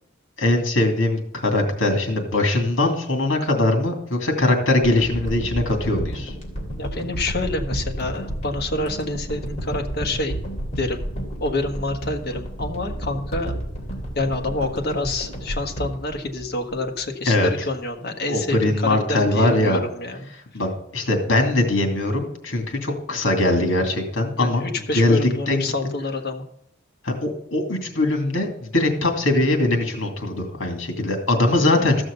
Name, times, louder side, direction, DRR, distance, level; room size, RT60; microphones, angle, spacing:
voice 1, 0.4-6.3 17.3-17.7 18.3-19.8 20.5-20.7 20.9-24.6 24.9-25.2 25.5-25.6 27.0-32.0, left 2 dB, 70° left, 4 dB, 2.5 m, -21 dB
sound 1, 4.8-17.0 17.6-17.7, right 1 dB, 35° left, 2.9 m, -31 dB
voice 2, 6.8-10.4 10.8-11.0 11.4-13.6 14.1-20.3 24.4-26.4, left 2 dB, 55° left, 5 dB, 1.4 m, -27 dB
14.0 x 6.3 x 6.7 m, 0.75 s
head